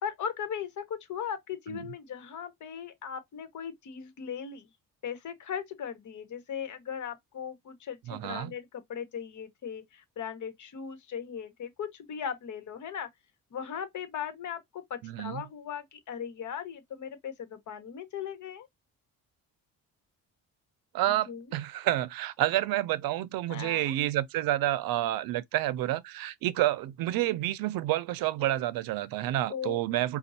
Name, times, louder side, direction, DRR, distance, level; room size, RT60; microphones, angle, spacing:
voice 1, 0.0-4.7 5.0-13.1 13.5-18.7 21.1-21.5 23.5-24.0 29.5-29.8, left 8 dB, 55° left, 1.2 m, -38 dB
voice 2, 8.1-8.5 15.0-15.4 20.9-30.2, right 14 dB, 85° right, 0.5 m, -29 dB
5.2 x 2.3 x 2.7 m
cardioid pair, 130°, 34 cm